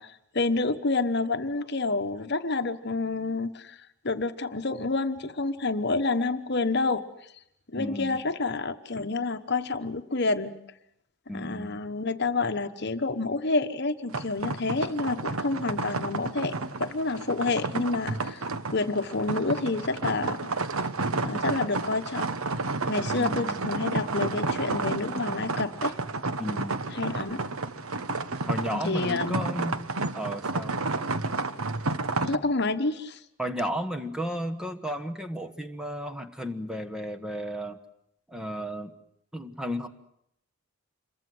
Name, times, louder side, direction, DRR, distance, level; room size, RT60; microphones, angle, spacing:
voice 1, 0.0-3.8 4.0-7.3 7.7-10.6 11.3-16.5 16.8-20.5 21.2-22.3 22.9-25.9 26.9-27.4 28.7-29.5 32.2-33.2, left 3 dB, 50° left, 8 dB, 1.2 m, -28 dB
voice 2, 7.7-8.2 11.3-11.8 23.2-23.6 26.4-26.8 28.5-29.8 30.1-30.7 33.4-37.8 38.3-38.9 39.3-39.9, equal, 5° right, 6 dB, 1.3 m, -33 dB
sound 1, 14.1-32.3, right 3 dB, 85° right, 1.2 m, -31 dB
27.0 x 22.5 x 7.9 m, 0.74 s
head